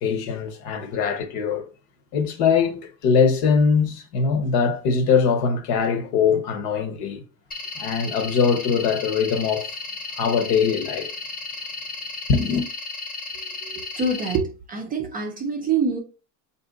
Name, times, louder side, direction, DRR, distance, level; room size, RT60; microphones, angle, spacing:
voice 1, 0.0-1.7 2.1-7.2 7.8-9.7 10.2-11.1 12.3-12.7, left 6 dB, 50° left, 1.0 m, -22 dB
sound 1, 7.5-14.4, left 3 dB, 20° left, 0.7 m, -34 dB
voice 2, 13.6-16.0, right 4 dB, 20° right, 0.5 m, -26 dB
4.1 x 2.6 x 3.8 m
supercardioid pair, 135°, 47 cm